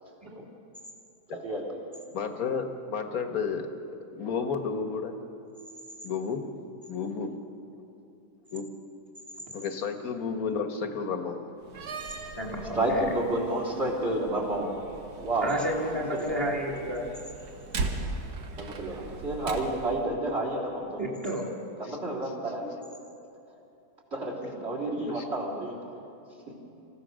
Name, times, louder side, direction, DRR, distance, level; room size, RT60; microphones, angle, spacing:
voice 1, 1.3-1.7 12.7-14.7 15.2-15.5 15.9-16.4 18.6-21.0 21.8-22.6 24.1-25.8 26.5-26.6, right 1 dB, 40° right, -1 dB, 4.0 m, -30 dB
voice 2, 2.1-3.7 4.1-5.1 6.0-6.5 6.9-7.3 8.5-8.7 9.5-11.4 21.9-22.0 25.0-25.3, left 5 dB, 65° left, 6 dB, 1.8 m, -31 dB
Slam, 11.6-20.0, right 3 dB, 75° right, 1.8 m, -39 dB
voice 3, 12.4-13.1 15.4-17.1 21.0-21.5, equal, 15° right, -1 dB, 2.1 m, -31 dB
28.0 x 15.5 x 6.4 m, 2.7 s
omnidirectional pair, 1.7 m